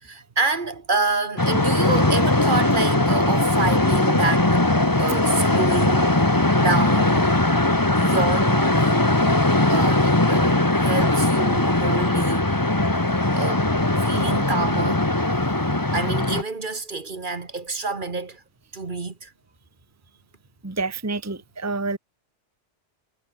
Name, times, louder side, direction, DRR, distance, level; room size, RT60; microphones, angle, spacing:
voice 1, 0.0-4.6 5.0-6.3 6.6-7.3 8.0-9.1 9.7-12.6 13.3-13.7 14.0-15.0 15.9-18.4 18.7-19.3, right 3 dB, 45° right, 1.7 m, -28 dB
sound 1, 1.4-16.4, left 2 dB, 15° left, 1.7 m, -20 dB
voice 2, 20.6-22.0, right 3 dB, 15° right, 1.2 m, -28 dB
omnidirectional pair, 1.2 m